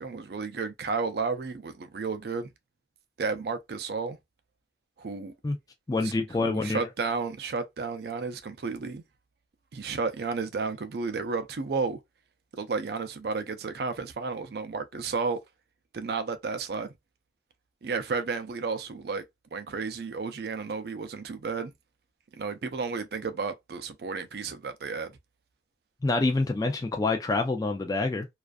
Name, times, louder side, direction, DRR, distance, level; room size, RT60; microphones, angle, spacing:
voice 1, 0.0-2.5 3.2-4.2 5.0-5.3 6.0-6.1 6.4-9.0 9.7-12.0 12.5-15.4 15.9-16.9 17.8-19.2 19.5-21.7 22.3-25.2, right 4 dB, 60° right, 0.4 m, -32 dB
voice 2, 5.9-6.9 26.0-28.3, left 3 dB, 20° left, 0.3 m, -27 dB
2.4 x 2.4 x 2.3 m
head